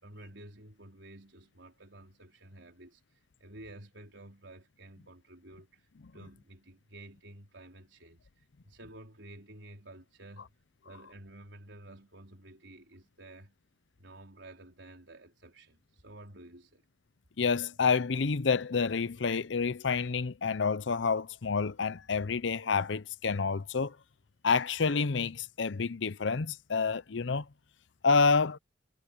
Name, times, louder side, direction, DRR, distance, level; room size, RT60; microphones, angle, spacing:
voice 1, 0.0-3.0 3.4-5.9 6.1-8.3 8.6-10.5 10.8-13.5 14.0-16.8, right 1 dB, 70° right, 4.8 m, -51 dB
voice 2, 17.4-23.9 24.4-27.4 28.0-28.6, left 5 dB, 70° left, 0.7 m, -28 dB
head